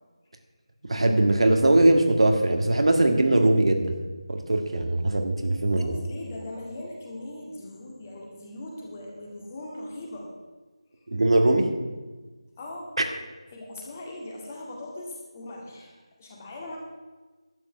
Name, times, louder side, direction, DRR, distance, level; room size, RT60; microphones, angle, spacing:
voice 1, 0.9-3.9 4.3-5.9 11.1-11.7, right 1 dB, 65° right, 4 dB, 1.8 m, -21 dB
voice 2, 5.8-10.3 12.6-12.9 13.5-16.8, left 1 dB, 20° left, -1 dB, 2.1 m, -39 dB
11.5 x 8.8 x 6.7 m, 1.3 s
figure-of-eight pair, 170°, 3 cm